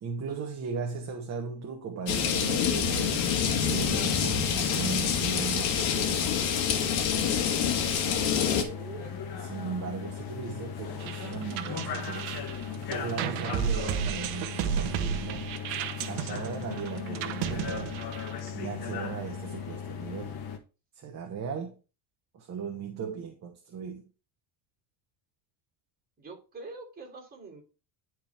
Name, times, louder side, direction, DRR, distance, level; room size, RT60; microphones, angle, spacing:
voice 1, 0.0-3.2 3.7-6.2 9.3-12.5 12.7-15.5 16.1-18.0 18.5-20.4 20.9-21.7 22.3-24.0, right 6 dB, 35° right, 1.2 m, -37 dB
sound 1, 2.1-8.6, left 8 dB, 70° left, 1.9 m, -27 dB
sound 2, 3.6-20.6, left 7 dB, 50° left, 1.5 m, -38 dB
voice 2, 8.1-9.1 26.2-27.6, right 4 dB, 20° right, 3.8 m, -44 dB
sound 3, 11.0-18.5, right 9 dB, 65° right, 1.1 m, -33 dB
10.5 x 4.7 x 3.4 m
cardioid pair, 135°, 49 cm